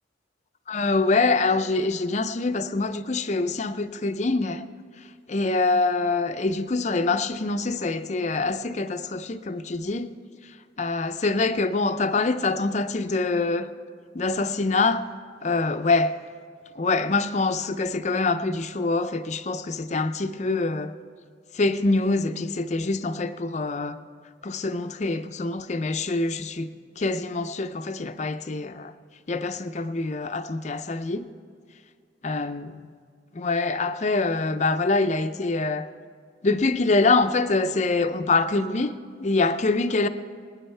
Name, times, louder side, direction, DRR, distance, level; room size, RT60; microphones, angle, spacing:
voice 1, 0.7-4.6 5.3-10.1 10.8-13.7 14.1-15.1 15.4-16.2 16.8-20.9 21.5-24.0 24.4-26.7 27.0-28.9 29.3-31.3 32.2-32.9 33.3-35.9 36.4-38.9 39.2-40.1, left 3 dB, 35° left, 0.5 m, -25 dB
24.0 x 9.8 x 3.4 m
head